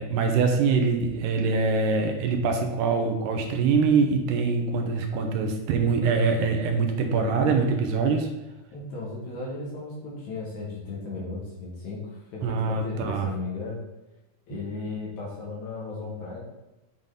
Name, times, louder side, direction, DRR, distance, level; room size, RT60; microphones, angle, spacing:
voice 1, 0.0-8.3 12.4-13.3, right 4 dB, 75° right, 4 dB, 2.1 m, -24 dB
voice 2, 8.7-13.8 14.5-16.4, left 3 dB, 60° left, -4 dB, 2.6 m, -35 dB
8.9 x 3.9 x 3.8 m, 1.0 s
omnidirectional pair, 4.1 m